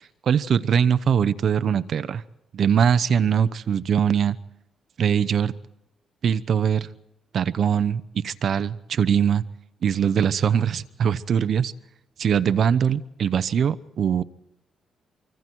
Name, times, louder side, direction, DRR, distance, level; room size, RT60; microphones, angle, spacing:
voice 1, 0.3-2.2 2.5-4.4 5.0-5.5 6.2-6.9 7.3-9.4 9.8-11.7 12.2-14.2, right 8 dB, 55° right, 14 dB, 0.9 m, -22 dB
25.5 x 25.0 x 4.6 m, 0.92 s
cardioid pair, 130°, 0 cm